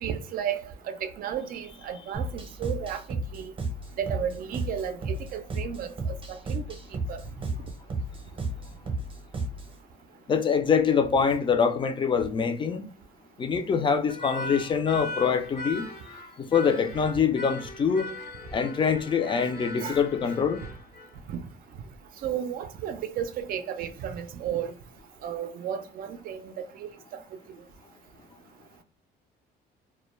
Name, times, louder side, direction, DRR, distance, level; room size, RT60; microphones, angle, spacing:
voice 1, 0.0-3.5 4.0-6.6 7.1-7.2 19.8-20.0 21.3-21.4 22.2-24.7 25.2-26.9, right 9 dB, 60° right, 0.4 m, -33 dB
sound 1, 2.1-9.8, right 2 dB, 30° right, 0.7 m, -33 dB
voice 2, 10.3-12.8 13.4-15.8 16.4-18.1 18.5-20.6, left 6 dB, 30° left, 0.4 m, -24 dB
sound 2, 14.1-21.2, left 2 dB, 65° left, 0.8 m, -39 dB
2.2 x 2.1 x 3.0 m
cardioid pair, 110°, 17 cm